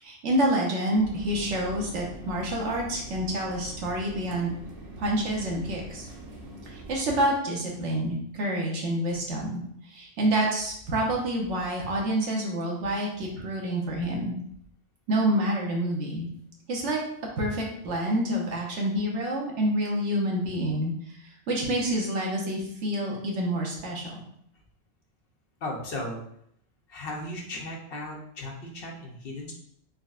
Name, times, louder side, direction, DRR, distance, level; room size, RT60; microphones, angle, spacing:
voice 1, 0.0-4.5 5.0-6.1 6.7-14.4 15.1-16.3 16.7-17.0 17.4-20.9 21.2-24.2, right 1 dB, 85° right, -1 dB, 1.2 m, -28 dB
sound 1, 0.9-7.0, right 1 dB, 65° right, 1.1 m, -43 dB
voice 2, 25.6-26.2 26.9-29.5, left 1 dB, 60° left, 0 dB, 0.9 m, -36 dB
4.0 x 3.3 x 2.4 m, 0.69 s
omnidirectional pair, 1.2 m